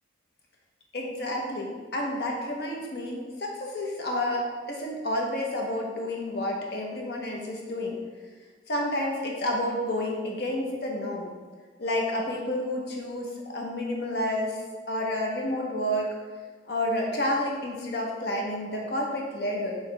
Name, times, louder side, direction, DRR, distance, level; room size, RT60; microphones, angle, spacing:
voice 1, 0.9-8.0 8.7-11.3 11.8-14.6 14.9-16.1 16.7-19.8, left 1 dB, 65° left, 0 dB, 0.8 m, -30 dB
4.7 x 3.1 x 3.3 m, 1.5 s
head